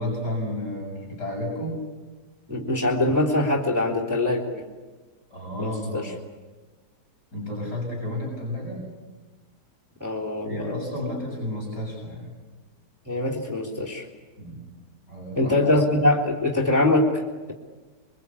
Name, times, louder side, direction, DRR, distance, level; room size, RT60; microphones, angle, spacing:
voice 1, 0.0-1.8 5.3-6.1 7.3-8.9 10.4-12.3 14.4-14.7 15.1-15.7, left 1 dB, 80° left, -2 dB, 8.0 m, -32 dB
voice 2, 2.5-4.6 5.6-6.0 10.0-10.7 13.0-14.1 15.4-17.2, left 1 dB, 10° right, -3 dB, 3.4 m, -23 dB
28.0 x 24.0 x 8.6 m, 1.3 s
omnidirectional pair, 1.8 m